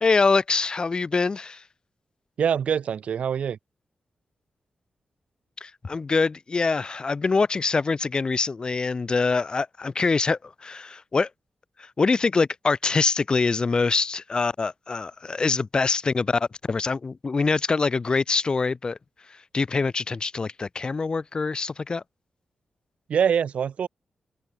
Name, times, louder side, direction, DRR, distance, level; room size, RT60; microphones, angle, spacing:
voice 1, 0.0-1.6 5.6-11.3 11.8-19.0 19.5-22.0, left 4 dB, 40° left, 0.3 m, -24 dB
voice 2, 2.4-3.6 23.1-23.9, right 7 dB, 75° right, 0.4 m, -24 dB
open air
cardioid pair, 60°, 2 cm